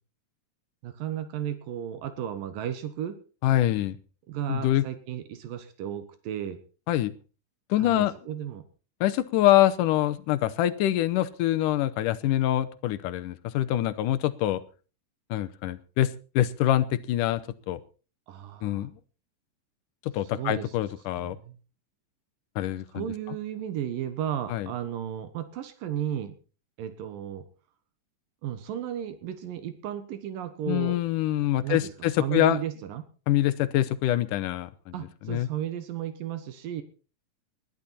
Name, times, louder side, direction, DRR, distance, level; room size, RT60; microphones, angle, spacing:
voice 1, 0.8-3.2 4.3-6.6 7.8-8.6 18.3-18.9 20.3-20.7 21.2-21.6 22.9-26.3 26.8-27.5 28.4-31.0 31.6-31.9 32.2-33.0 34.9-36.8, right 10 dB, 80° right, 11 dB, 2.9 m, -34 dB
voice 2, 3.4-4.0 4.5-4.9 6.9-7.1 7.7-8.1 9.0-14.6 15.3-17.8 18.6-18.9 20.1-21.4 22.6-23.1 24.5-24.7 30.7-32.6 33.3-34.9 35.2-35.5, left 13 dB, 75° left, 12 dB, 2.3 m, -25 dB
20.5 x 12.0 x 4.2 m, 0.36 s
omnidirectional pair, 3.9 m